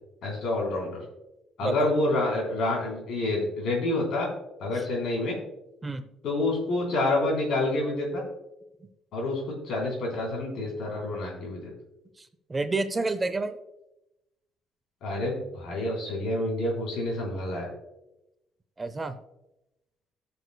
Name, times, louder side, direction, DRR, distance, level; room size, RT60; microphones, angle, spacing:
voice 1, 0.2-1.0 1.6-4.3 4.6-5.4 6.2-8.2 9.1-11.7 15.0-17.7, left 2 dB, 70° left, -2 dB, 3.5 m, -28 dB
voice 2, 12.2-13.6 18.8-19.2, right 3 dB, 20° right, 11 dB, 0.5 m, -30 dB
16.0 x 6.9 x 2.2 m, 0.92 s
cardioid pair, 125°, 0 cm